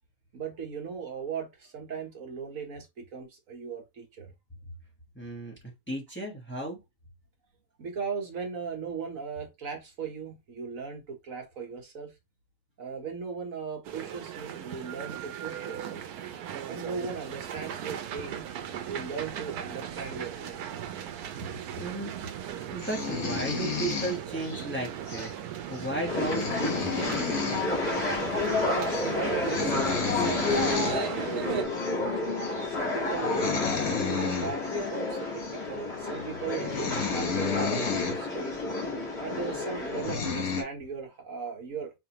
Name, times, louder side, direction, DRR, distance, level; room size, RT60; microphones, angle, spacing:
voice 1, 0.3-4.3 7.8-12.1 12.8-16.0 16.7-18.5 18.9-20.9 28.4-30.6 30.9-33.5 34.1-37.8 38.1-38.5 39.2-41.9, right 5 dB, 65° right, 1.4 m, -38 dB
voice 2, 5.1-5.5 5.9-6.8 21.5-22.1 22.7-27.1, right 1 dB, 10° left, 1.1 m, -35 dB
sound 1, 13.8-31.6, right 9 dB, 90° right, 1.1 m, -37 dB
sound 2, 22.8-24.6 25.1-25.3 25.7-25.8 26.1-27.7 27.9-28.1 28.4-28.6 28.9-29.1 29.4-31.0 31.8-31.9 32.4-32.6 33.1-34.8 35.4-35.6 36.2-36.3 36.5-38.2 38.7-38.8 39.5-39.6 39.9-40.6, left 6 dB, 70° left, 1.6 m, -32 dB
sound 3, 26.1-40.1, left 3 dB, 45° left, 1.8 m, -31 dB
4.4 x 3.2 x 2.9 m
omnidirectional pair, 1.6 m